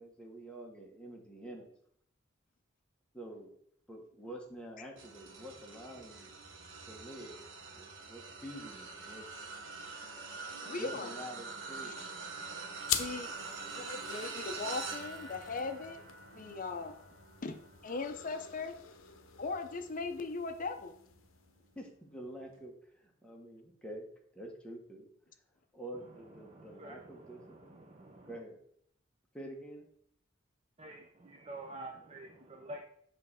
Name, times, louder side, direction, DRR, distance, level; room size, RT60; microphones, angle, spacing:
voice 1, 0.0-1.7 3.1-3.5 3.9-6.3 6.8-7.4 7.7-9.2 10.8-12.1 21.7-24.1 24.3-25.1 25.7-27.8 28.3-28.5 29.3-29.9, right 1 dB, 5° left, 0 dB, 1.2 m, -47 dB
sound 1, 5.0-20.5 21.0-21.2 22.5-22.6, right 4 dB, 70° right, 1.2 m, -45 dB
voice 2, 10.6-11.1 11.8-12.1 13.0-13.3 13.6-16.0 16.3-17.0 17.4-18.7 19.4-20.9, left 3 dB, 40° left, 7 dB, 0.6 m, -39 dB
sound 2, 12.8-21.8, left 10 dB, 85° left, 0.6 m, -44 dB
voice 3, 26.4-28.3 30.8-32.8, right 2 dB, 30° right, 2 dB, 0.6 m, -48 dB
7.4 x 3.2 x 5.6 m, 0.68 s
head